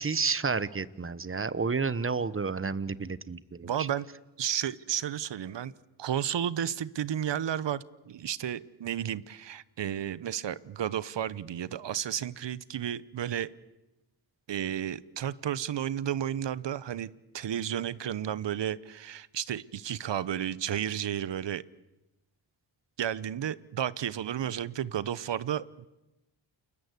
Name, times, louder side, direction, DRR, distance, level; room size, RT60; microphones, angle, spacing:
voice 1, 0.0-3.9, right 4 dB, 25° right, 17 dB, 1.1 m, -31 dB
voice 2, 3.6-4.1 4.4-5.7 6.0-13.5 14.5-21.6 23.0-25.9, right 10 dB, 65° right, 19 dB, 1.0 m, -32 dB
29.5 x 21.5 x 8.3 m, 1.0 s
cardioid pair, 80°, 47 cm